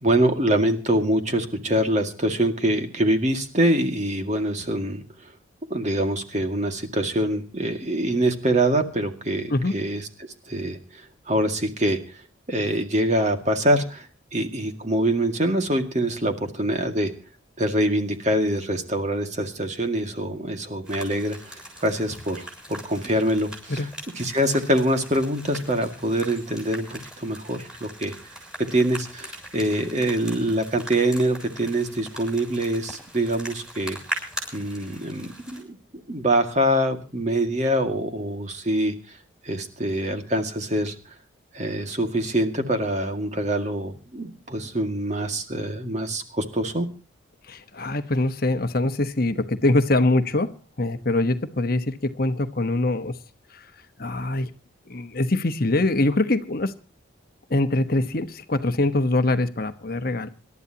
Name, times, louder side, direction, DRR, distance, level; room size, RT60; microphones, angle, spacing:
voice 1, 0.0-5.0 5.7-10.0 10.5-10.8 11.3-12.0 12.5-14.1 14.3-17.1 17.6-23.9 24.2-28.1 28.7-34.0 34.5-35.8 36.1-38.9 39.4-40.9 41.5-46.9, right 1 dB, 35° right, 5 dB, 2.1 m, -24 dB
sound 1, 20.8-35.6, right 1 dB, 5° right, 6.7 m, -40 dB
voice 2, 23.7-24.0 47.5-53.2 53.5-53.7 54.0-54.5 54.9-56.7 57.5-60.3, left 2 dB, 45° left, 9 dB, 1.1 m, -23 dB
26.5 x 12.5 x 2.9 m, 0.34 s
head